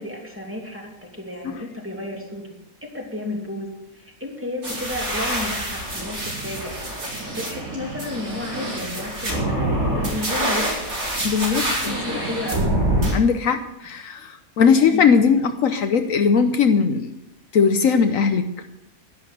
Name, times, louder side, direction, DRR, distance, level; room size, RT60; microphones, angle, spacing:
voice 1, 0.0-2.5 2.8-6.7 7.4-10.9 11.4-12.8 14.8-15.1, left 1 dB, 10° right, -1 dB, 2.8 m, -32 dB
sound 1, 4.6-13.1, right 1 dB, 70° right, 5.0 m, -26 dB
voice 2, 11.2-12.0 13.1-17.1 17.5-18.7, left 6 dB, 70° left, 8 dB, 1.2 m, -19 dB
11.5 x 11.0 x 6.6 m, 0.89 s
omnidirectional pair, 1.5 m